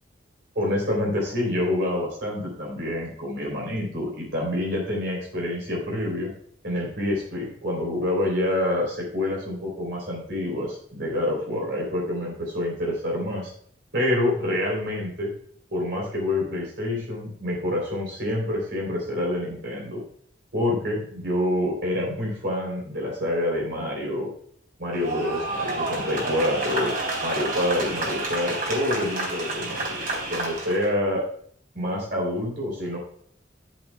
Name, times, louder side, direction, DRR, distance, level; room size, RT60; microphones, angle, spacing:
voice 1, 0.6-6.3 6.6-13.5 13.9-15.3 15.7-20.0 20.5-24.3 24.8-26.9 27.2-30.0 30.3-31.2 31.8-33.0, left 1 dB, 70° right, -2 dB, 3.6 m, -27 dB
sound 1, 24.9-30.9, right 2 dB, 50° right, 3.8 m, -29 dB
14.0 x 7.5 x 2.3 m, 0.62 s
head